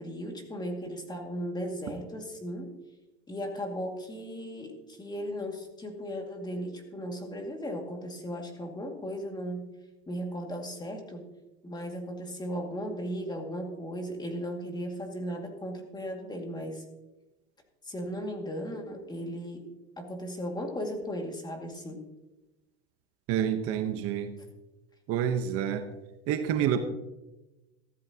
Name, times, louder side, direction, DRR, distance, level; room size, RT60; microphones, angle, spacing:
voice 1, 0.0-2.7 3.3-9.7 10.1-11.3 11.6-16.8 17.8-19.7 20.0-22.0, equal, 15° left, 3 dB, 2.2 m, -36 dB
voice 2, 23.3-24.3 25.1-25.8 26.3-26.8, right 9 dB, 50° right, 8 dB, 1.2 m, -28 dB
15.5 x 13.0 x 2.9 m, 1.0 s
supercardioid pair, 115°, 30 cm